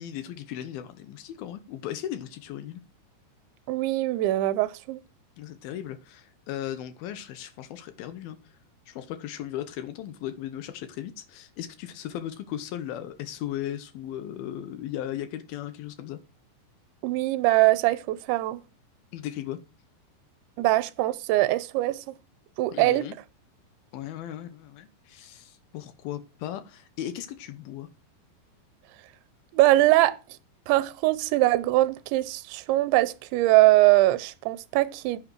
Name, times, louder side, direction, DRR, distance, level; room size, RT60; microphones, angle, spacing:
voice 1, 0.0-2.8 5.4-8.4 8.9-16.2 19.1-19.6 22.7-23.1 23.9-27.9, left 11 dB, 75° left, 2.2 m, -37 dB
voice 2, 3.7-5.0 17.0-18.6 20.6-22.1 22.6-23.1 29.5-30.2 30.7-35.2, right 17 dB, 85° right, 3.1 m, -22 dB
10.0 x 9.1 x 4.5 m
omnidirectional pair, 5.2 m